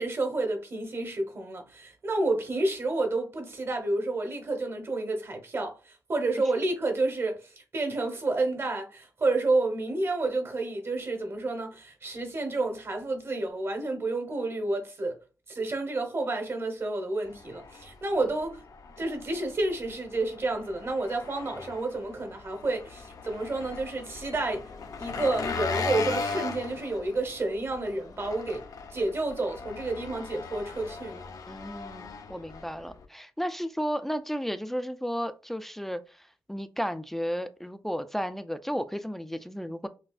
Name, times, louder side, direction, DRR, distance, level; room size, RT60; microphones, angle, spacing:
voice 1, 0.0-15.2 15.5-18.6 19.0-24.7 25.0-28.7 28.9-31.2, right 2 dB, 35° right, 1.1 m, -30 dB
Engine, 17.3-33.1, left 4 dB, 55° left, 0.6 m, -38 dB
voice 2, 31.5-39.9, equal, 5° left, 0.3 m, -33 dB
5.7 x 2.3 x 2.4 m
wide cardioid pair, 125°, 7 cm